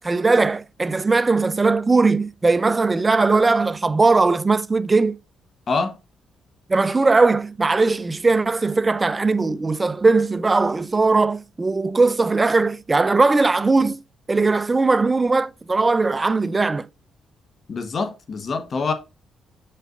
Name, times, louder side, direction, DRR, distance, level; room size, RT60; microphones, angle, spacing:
voice 1, 0.0-5.2 6.7-14.0 14.3-16.9, right 3 dB, 25° right, 0.4 m, -19 dB
voice 2, 5.7-6.0 17.7-18.9, left 4 dB, 50° left, 1.1 m, -25 dB
7.4 x 5.4 x 2.5 m
cardioid pair, 80°, 0 cm